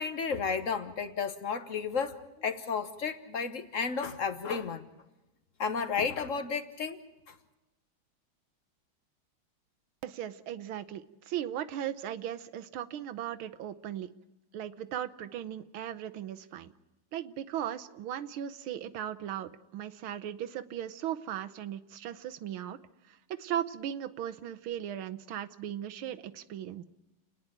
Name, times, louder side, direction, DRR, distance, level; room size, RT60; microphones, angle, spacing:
voice 1, 0.0-4.8 5.6-7.0, left 5 dB, 45° left, 10 dB, 1.3 m, -32 dB
voice 2, 10.0-14.1 14.5-16.7 17.1-22.8 23.1-26.8, right 10 dB, 80° right, 11 dB, 1.7 m, -37 dB
30.0 x 10.0 x 9.1 m, 1.0 s
omnidirectional pair, 2.2 m